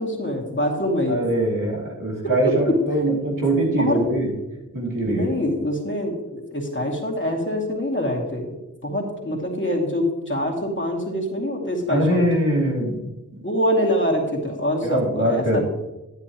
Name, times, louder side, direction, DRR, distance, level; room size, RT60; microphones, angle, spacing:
voice 1, 0.0-1.2 2.2-2.5 2.9-3.2 3.8-4.0 5.1-8.5 8.8-12.3 13.4-15.6, equal, 35° left, 0 dB, 2.5 m, -25 dB
voice 2, 1.1-4.3 4.7-5.2 11.9-13.1 14.8-15.6, right 1 dB, 90° right, -3 dB, 2.9 m, -22 dB
11.0 x 8.9 x 3.0 m, 1.0 s
cardioid pair, 50°, 32 cm